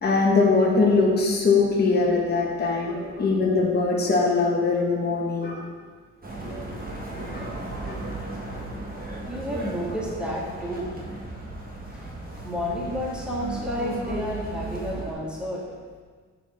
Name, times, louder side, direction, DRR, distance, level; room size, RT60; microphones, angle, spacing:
voice 1, 0.0-5.6 6.4-6.6 7.1-7.5 7.9-8.0, left 3 dB, 35° left, -3 dB, 1.4 m, -22 dB
sound 1, 6.2-15.1, right 2 dB, 30° right, 1.4 m, -35 dB
voice 2, 9.3-15.7, equal, 5° right, -6 dB, 2.1 m, -32 dB
7.0 x 6.0 x 3.6 m, 1.5 s
cardioid pair, 90°, 30 cm